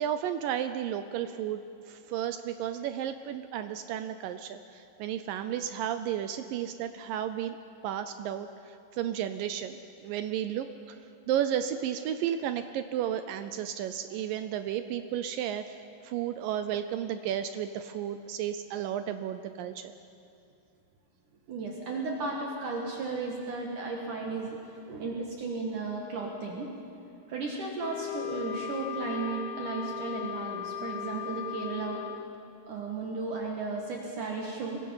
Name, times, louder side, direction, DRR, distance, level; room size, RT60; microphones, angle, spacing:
voice 1, 0.0-1.6 1.9-7.6 7.8-10.7 11.3-15.8 16.0-19.9, right 10 dB, 80° right, 10 dB, 2.0 m, -33 dB
voice 2, 21.5-24.6 24.9-26.7 27.3-32.0 32.7-34.8, right 3 dB, 60° right, 0 dB, 2.8 m, -34 dB
Wind instrument woodwind instrument, 27.8-32.3, left 9 dB, 80° left, 2.0 m, -37 dB
26.5 x 22.0 x 5.6 m, 2.6 s
omnidirectional pair, 4.6 m